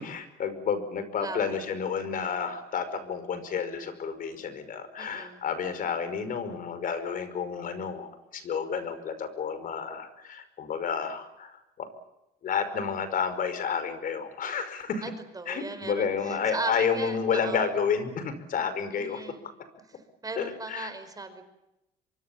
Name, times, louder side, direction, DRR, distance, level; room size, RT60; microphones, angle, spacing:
voice 1, 0.0-11.9 12.4-15.0 15.5-19.2 20.4-20.9, left 6 dB, 55° left, 12 dB, 5.3 m, -30 dB
voice 2, 1.2-1.6 5.0-5.4 15.0-17.7 18.9-19.5 20.2-21.4, right 3 dB, 20° right, 9 dB, 4.9 m, -38 dB
25.0 x 24.0 x 7.3 m, 0.90 s
cardioid pair, 110°, 17 cm